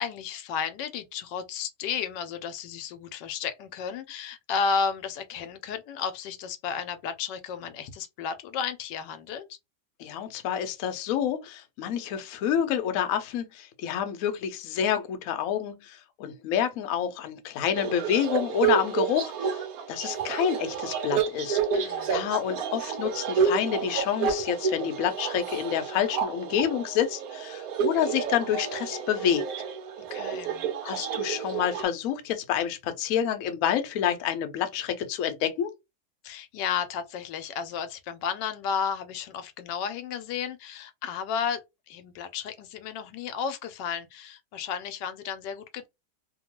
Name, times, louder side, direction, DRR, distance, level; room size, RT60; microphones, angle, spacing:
voice 1, 0.0-9.6 21.7-22.2 30.0-30.7 36.2-41.6 41.9-45.9, left 6 dB, 85° left, 1.2 m, -33 dB
voice 2, 10.0-29.4 30.8-35.7, left 9 dB, 65° left, 0.9 m, -28 dB
sound 1, 17.7-31.8, right 6 dB, 65° right, 1.0 m, -30 dB
2.8 x 2.2 x 2.8 m
omnidirectional pair, 1.8 m